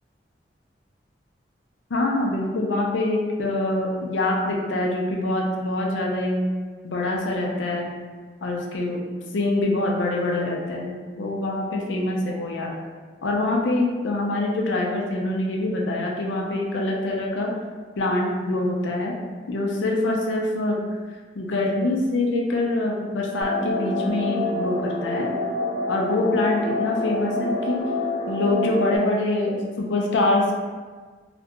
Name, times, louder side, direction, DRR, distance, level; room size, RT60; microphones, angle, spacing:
voice 1, 1.9-6.4 6.8-7.9 8.4-9.0 9.3-12.7 13.2-17.5 18.0-19.1 19.5-20.8 21.4-25.3 25.9-27.8 28.3-30.5, left 2 dB, 85° left, -1 dB, 0.5 m, -24 dB
sound 1, 23.4-29.0, left 2 dB, 25° left, 0.4 m, -27 dB
2.4 x 2.1 x 2.8 m, 1.5 s
head